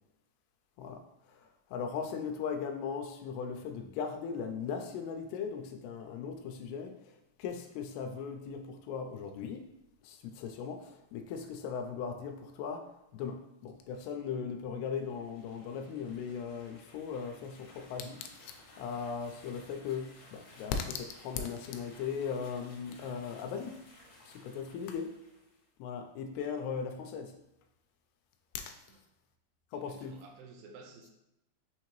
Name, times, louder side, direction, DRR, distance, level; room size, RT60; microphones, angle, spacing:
voice 1, 0.8-9.7 10.0-23.8 24.3-25.2 25.8-27.4 28.5-28.7 29.7-30.2, left 6 dB, 90° left, 5 dB, 2.6 m, -38 dB
sound 1, 14.8-25.6, left 2 dB, 60° left, 1.5 m, -57 dB
voice 2, 29.7-31.1, right 4 dB, 80° right, 1 dB, 2.1 m, -53 dB
6.4 x 2.8 x 3.0 m, 0.87 s
omnidirectional pair, 4.6 m